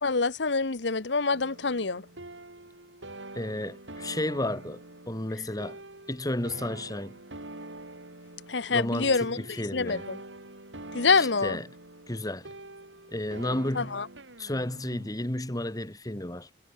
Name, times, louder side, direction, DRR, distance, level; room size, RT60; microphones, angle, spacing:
voice 1, 0.0-2.0 8.5-10.2 10.9-11.6 13.7-14.1, left 4 dB, 70° left, 1.2 m, -26 dB
sound 1, 1.3-15.1, right 2 dB, 90° right, 6.8 m, -45 dB
voice 2, 3.4-4.8 5.1-5.8 6.1-7.2 8.7-10.0 11.2-11.7 12.1-12.5 13.1-14.0 14.4-16.5, left 1 dB, 20° left, 1.8 m, -32 dB
head